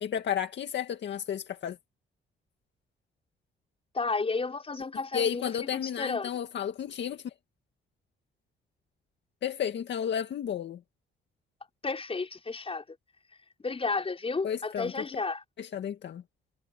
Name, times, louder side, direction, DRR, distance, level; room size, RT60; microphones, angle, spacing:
voice 1, 0.0-1.8 5.1-7.3 9.4-10.8 14.4-14.9 15.6-16.2, left 9 dB, 65° left, 2.1 m, -32 dB
voice 2, 3.9-6.3 11.8-12.8 13.6-15.4, left 4 dB, 30° left, 5.4 m, -32 dB
cardioid pair, 90°, 20 cm